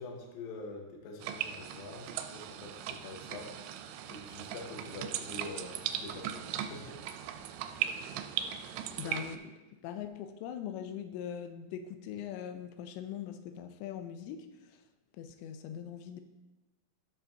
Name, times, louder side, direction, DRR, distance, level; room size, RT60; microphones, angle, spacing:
voice 1, 0.0-3.6 4.1-7.4, left 3 dB, 65° left, 0 dB, 2.7 m, -45 dB
sound 1, 1.2-9.4, right 10 dB, 90° right, 2.9 m, -38 dB
voice 2, 9.0-9.5 9.8-14.8 15.2-16.2, left 9 dB, 90° left, 7 dB, 2.9 m, -41 dB
13.0 x 6.8 x 2.7 m, 1.1 s
omnidirectional pair, 5.1 m